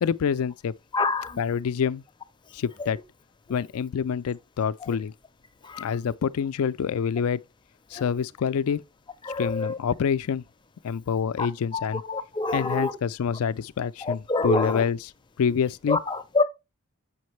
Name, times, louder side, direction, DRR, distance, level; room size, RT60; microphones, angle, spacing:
voice 1, 0.0-0.7 1.4-2.0 2.5-3.0 3.5-5.1 5.8-7.4 7.9-8.8 9.4-10.4 10.8-12.0 12.5-15.0 15.4-16.0, left 7 dB, 70° left, 0.4 m, -26 dB
voice 2, 0.9-1.4 4.8-5.0 5.6-5.9 7.9-8.1 9.2-9.8 11.4-11.5 11.7-12.9 14.0-14.8 15.9-16.4, left 3 dB, 20° left, 0.6 m, -27 dB
7.1 x 5.3 x 3.0 m
head